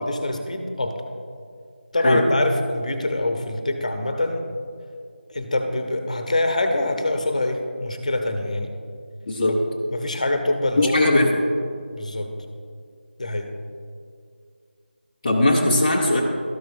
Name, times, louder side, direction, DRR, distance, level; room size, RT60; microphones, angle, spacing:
voice 1, 0.1-1.0 1.9-4.4 5.3-8.7 9.5-9.6 9.9-11.1 11.9-12.3 13.2-13.5, left 2 dB, 40° left, 5 dB, 0.8 m, -25 dB
voice 2, 9.3-9.6 10.8-11.3 15.2-16.2, left 1 dB, 20° left, -5 dB, 0.5 m, -19 dB
13.0 x 5.9 x 2.7 m, 2.2 s
figure-of-eight pair, 170°, 6 cm